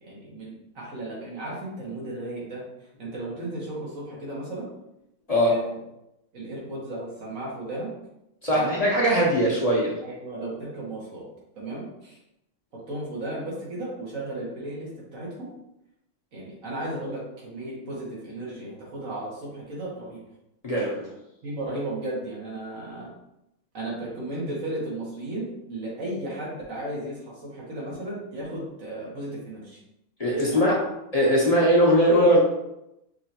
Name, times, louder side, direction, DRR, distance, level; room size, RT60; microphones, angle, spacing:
voice 1, 0.0-2.6 3.0-4.7 5.5-5.8 6.3-7.9 8.5-8.8 10.0-11.3 11.6-12.2 12.7-15.5 16.3-20.2 21.4-23.1 23.7-29.8 30.3-30.6, right 1 dB, 85° right, -4 dB, 1.8 m, -35 dB
voice 2, 8.4-10.0 20.6-21.1 30.2-30.8 31.1-32.4, equal, 30° left, -4 dB, 0.9 m, -20 dB
5.3 x 3.2 x 2.9 m, 0.86 s
omnidirectional pair, 1.4 m